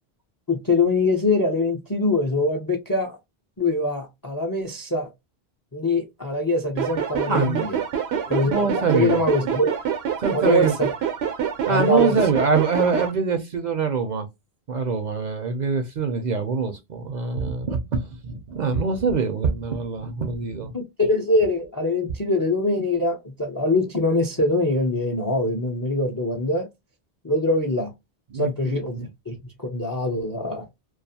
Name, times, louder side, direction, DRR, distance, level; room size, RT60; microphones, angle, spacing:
voice 1, 0.5-3.2 3.6-5.1 5.7-7.8 8.3-9.8 10.3-10.9 11.7-12.2 20.7-26.7 27.2-27.9 28.3-29.3 29.6-30.7, left 2 dB, 35° left, 0.3 m, -23 dB
sound 1, 6.8-13.1, right 8 dB, 80° right, 0.9 m, -26 dB
voice 2, 7.3-7.6 8.3-9.2 10.2-10.7 11.7-14.3 14.7-20.7 28.3-29.1, right 5 dB, 55° right, 0.5 m, -24 dB
2.4 x 2.3 x 2.6 m
omnidirectional pair, 1.1 m